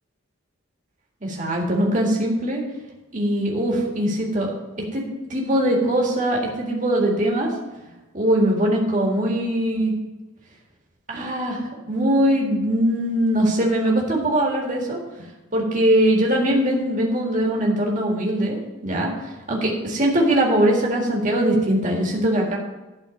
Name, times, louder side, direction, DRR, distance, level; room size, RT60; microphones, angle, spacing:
voice 1, 1.2-2.6 3.1-4.5 4.8-5.0 5.3-7.5 8.1-9.9 11.1-11.6 11.9-15.0 15.5-22.6, right 1 dB, 35° right, -1 dB, 1.8 m, -21 dB
11.5 x 4.2 x 7.1 m, 1.1 s
head